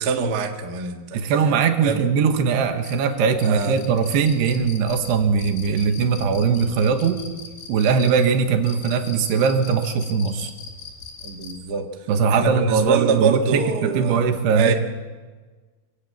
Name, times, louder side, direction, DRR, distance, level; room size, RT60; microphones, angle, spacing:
voice 1, 0.0-1.2 1.8-2.0 2.6-2.7 3.4-3.7 11.2-11.9 12.3-14.2 14.5-14.7, right 5 dB, 55° right, 4 dB, 1.1 m, -24 dB
voice 2, 1.1-7.3 7.7-10.5 12.1-14.7, right 6 dB, 85° right, 6 dB, 3.6 m, -20 dB
sound 1, 2.8-11.7, left 5 dB, 70° left, 4.1 m, -40 dB
25.0 x 16.5 x 7.5 m, 1.4 s
omnidirectional pair, 4.7 m